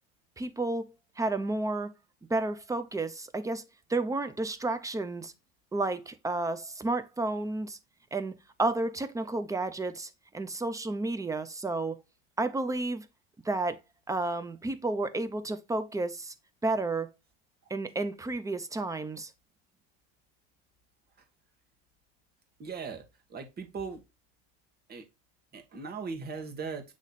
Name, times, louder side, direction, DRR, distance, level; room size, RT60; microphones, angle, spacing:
voice 1, 0.4-1.9 2.3-3.6 3.9-5.3 5.7-7.8 8.1-12.0 12.4-13.1 13.4-13.8 14.1-16.3 16.6-17.1 17.7-19.3, right 2 dB, 10° right, 0.6 m, -31 dB
voice 2, 22.6-23.0 23.3-24.0 24.9-25.0 25.5-26.8, right 5 dB, 30° right, 1.5 m, -38 dB
8.1 x 3.2 x 4.0 m
supercardioid pair, 120°, 33 cm